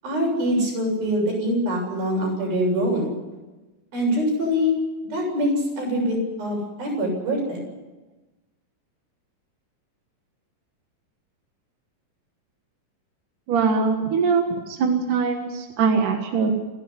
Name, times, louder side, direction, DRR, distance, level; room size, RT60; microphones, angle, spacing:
voice 1, 0.0-3.1 3.9-4.7 5.1-7.6, equal, 85° right, -1 dB, 9.4 m, -24 dB
voice 2, 13.5-16.5, right 5 dB, 65° right, 3 dB, 3.1 m, -22 dB
28.5 x 11.5 x 9.9 m, 1.1 s
omnidirectional pair, 4.1 m